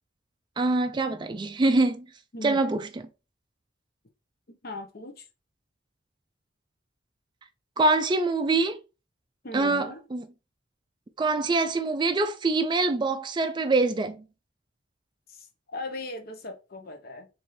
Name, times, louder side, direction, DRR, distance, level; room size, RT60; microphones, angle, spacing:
voice 1, 0.6-2.1 2.4-2.9 7.8-8.8 9.5-10.2 11.2-14.2, right 3 dB, 25° right, 0.3 m, -24 dB
voice 2, 2.3-2.6 4.5-5.3 9.4-10.0 15.3-17.3, left 2 dB, 50° left, 0.7 m, -39 dB
4.1 x 2.6 x 3.0 m
head